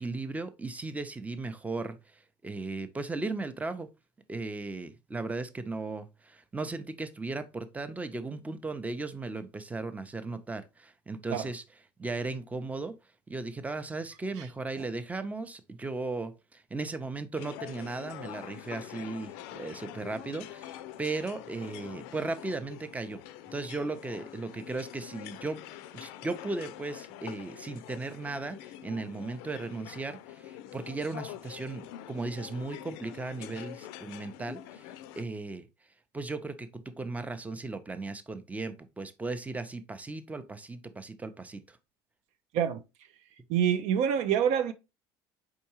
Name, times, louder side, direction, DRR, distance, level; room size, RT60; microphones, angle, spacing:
voice 1, 0.0-3.9 4.3-11.6 12.0-12.9 13.3-23.2 23.5-25.6 25.9-35.7 36.1-41.8, right 3 dB, 10° right, 0.6 m, -36 dB
sound 1, 17.4-35.2, left 12 dB, 80° left, 0.4 m, -45 dB
voice 2, 43.5-44.7, right 8 dB, 70° right, 0.4 m, -26 dB
4.5 x 3.6 x 2.9 m
supercardioid pair, 85°, 12 cm